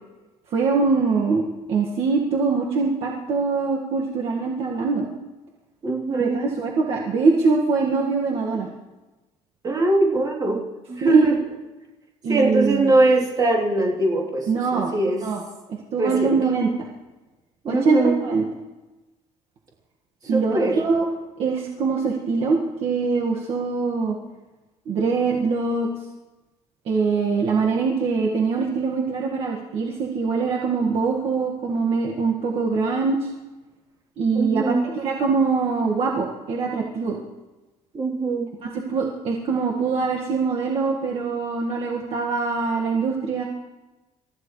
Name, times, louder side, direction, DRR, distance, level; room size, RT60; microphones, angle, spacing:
voice 1, 0.5-5.1 6.1-8.7 11.0-11.3 12.2-12.9 14.5-14.9 15.2-15.4 15.7-16.7 17.7-18.4 20.3-21.1 21.4-24.2 24.9-25.9 26.9-33.3 34.2-37.2 38.6-43.4, right 4 dB, 50° right, -2 dB, 1.8 m, -23 dB
voice 2, 5.8-6.5 9.6-10.6 10.9-11.4 12.3-15.2 16.0-16.4 17.6-18.2 20.3-20.8 34.3-34.9 37.9-38.5, right 2 dB, 35° right, -3 dB, 3.3 m, -21 dB
28.5 x 14.5 x 3.2 m, 1.1 s
cardioid pair, 150°, 12 cm